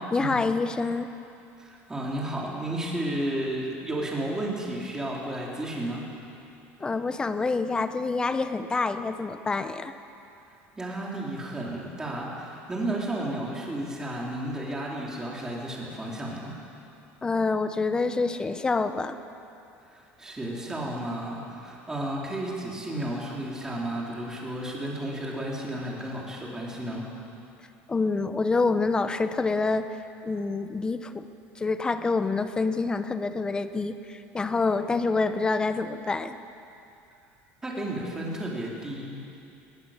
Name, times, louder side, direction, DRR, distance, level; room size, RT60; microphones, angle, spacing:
voice 1, 0.1-1.1 6.8-9.9 17.2-19.2 27.9-29.9 30.2-31.2 31.6-36.4, left 3 dB, 15° left, 10 dB, 0.9 m, -27 dB
voice 2, 1.6-6.0 10.8-16.6 19.9-27.1 37.6-39.4, right 1 dB, 10° right, -3 dB, 3.9 m, -33 dB
20.0 x 19.0 x 7.5 m, 2.7 s
cardioid pair, 150°, 6 cm